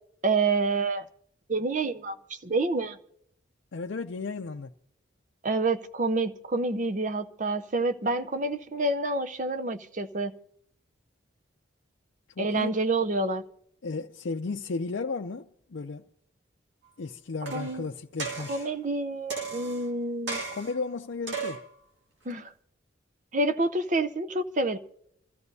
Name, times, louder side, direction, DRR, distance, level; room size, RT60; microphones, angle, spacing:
voice 1, 0.2-1.0 1.5-3.0 5.4-10.3 12.4-13.4 17.5-17.9 18.5-20.4 22.2-22.5 23.3-24.8, right 2 dB, 40° right, 0.7 m, -28 dB
voice 2, 3.7-4.7 12.4-12.7 13.8-16.0 17.0-18.7 20.5-21.6, left 4 dB, 70° left, 0.5 m, -34 dB
sound 1, 17.5-17.8 18.2-18.7 19.3-19.9 20.3-20.8 21.3-21.7 22.3-22.4, right 4 dB, 70° right, 2.2 m, -35 dB
27.0 x 14.0 x 2.7 m
head